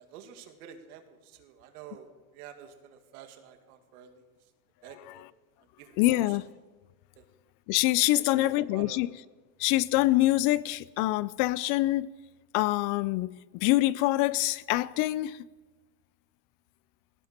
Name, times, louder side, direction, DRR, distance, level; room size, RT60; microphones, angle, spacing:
voice 1, 0.0-4.1 4.8-5.2 5.8-6.2 7.2-7.3 8.1-9.0, right 8 dB, 85° right, 2.2 m, -48 dB
voice 2, 6.0-6.5 7.7-9.1 9.6-12.1 12.5-15.5, left 17 dB, 50° left, 0.4 m, -25 dB
20.0 x 16.5 x 4.3 m
cardioid pair, 155°, 43 cm